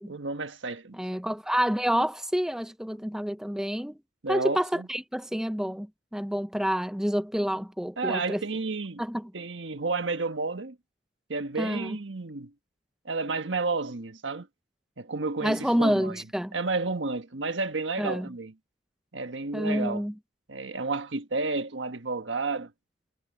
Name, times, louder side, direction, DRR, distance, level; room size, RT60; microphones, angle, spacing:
voice 1, 0.1-1.0 4.2-4.9 8.0-9.0 9.3-10.8 11.3-12.5 13.0-14.5 15.0-16.2 16.5-18.5 19.1-20.0 20.5-22.7, right 3 dB, 80° right, 1.4 m, -31 dB
voice 2, 1.0-3.9 4.3-8.4 9.0-9.3 11.6-12.0 15.4-16.5 18.0-18.3 19.5-20.1, equal, 5° right, 0.6 m, -28 dB
head